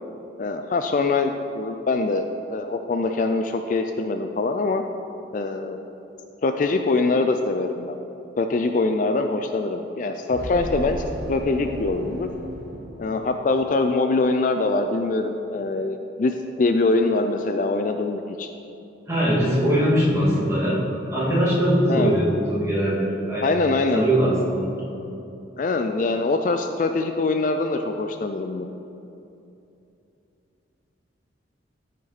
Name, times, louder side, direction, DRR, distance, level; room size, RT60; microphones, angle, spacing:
voice 1, 0.4-4.8 5.3-5.9 6.4-8.0 8.4-12.3 13.0-18.5 21.9-22.1 23.4-24.0 25.6-28.7, left 3 dB, 40° left, 6 dB, 0.3 m, -23 dB
sound 1, 10.3-13.8, equal, 60° right, 0.7 m, -35 dB
voice 2, 19.1-20.8 21.1-23.5 23.9-24.7, equal, 15° right, -8 dB, 2.2 m, -21 dB
13.5 x 5.2 x 4.1 m, 2.8 s
head